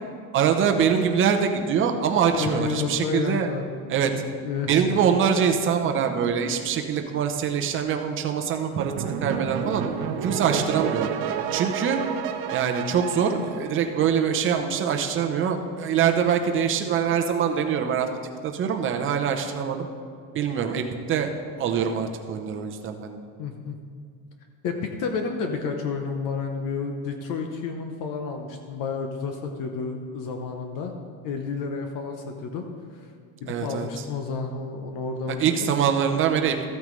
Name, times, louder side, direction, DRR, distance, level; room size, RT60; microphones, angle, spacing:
voice 1, 0.3-3.5 3.9-4.1 4.6-9.8 10.2-11.1 11.5-12.0 12.5-18.1 18.4-19.9 20.3-21.3 21.6-23.2 33.5-33.9 35.4-36.6, right 7 dB, 30° right, 5 dB, 0.7 m, -24 dB
voice 2, 2.3-3.7 4.1-5.0 23.4-23.8 24.6-30.9 31.2-32.6 32.9-33.1 33.4-35.7, left 5 dB, 50° left, 4 dB, 0.9 m, -31 dB
sound 1, 8.8-14.2, right 8 dB, 65° right, 0.9 m, -30 dB
14.0 x 8.7 x 3.2 m, 2.3 s
cardioid pair, 155°, 41 cm